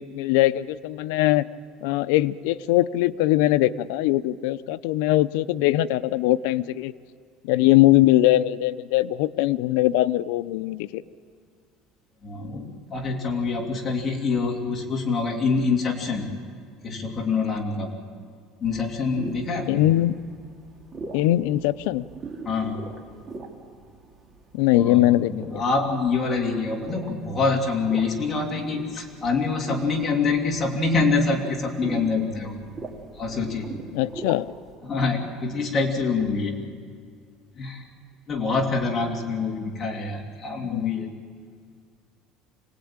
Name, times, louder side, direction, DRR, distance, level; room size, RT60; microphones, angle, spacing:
voice 1, 0.0-1.4 1.8-6.9 7.4-11.0 19.7-20.2 21.1-22.0 24.5-25.6 33.9-34.5 40.7-41.0, left 15 dB, 90° left, 15 dB, 0.6 m, -21 dB
voice 2, 12.2-16.4 16.8-17.9 18.6-19.8 22.4-22.8 24.8-32.6 33.2-33.8 34.8-36.6 37.6-37.8 38.3-41.1, left 4 dB, 20° left, 0 dB, 2.6 m, -25 dB
sound 1, 18.6-34.7, right 3 dB, 20° right, 2.3 m, -41 dB
25.5 x 18.5 x 8.8 m, 2.1 s
cardioid pair, 165°, 0 cm